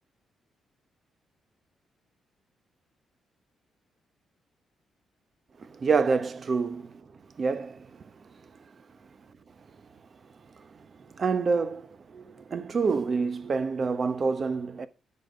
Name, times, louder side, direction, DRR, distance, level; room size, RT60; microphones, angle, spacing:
voice 1, 5.6-7.1 7.4-8.0 10.6-14.9, right 4 dB, 45° right, 0.9 m, -28 dB
10.0 x 4.3 x 5.4 m
cardioid pair, 90°, 0 cm